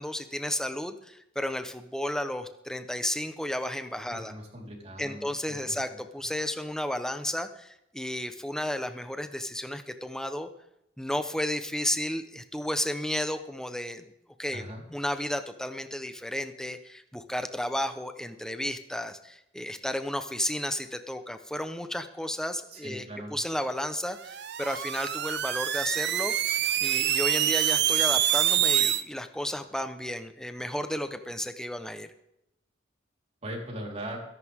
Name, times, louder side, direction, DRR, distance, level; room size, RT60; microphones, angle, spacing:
voice 1, 0.0-4.3 5.0-10.5 11.0-14.0 14.4-23.0 23.3-26.3 26.8-32.1, left 1 dB, 5° left, 8 dB, 1.0 m, -33 dB
voice 2, 4.1-6.0 14.5-14.8 22.7-23.4 33.4-34.2, right 1 dB, 35° right, -1 dB, 4.3 m, -40 dB
sound 1, 24.2-29.0, right 11 dB, 60° right, 0.8 m, -26 dB
22.5 x 11.0 x 3.7 m, 0.82 s
head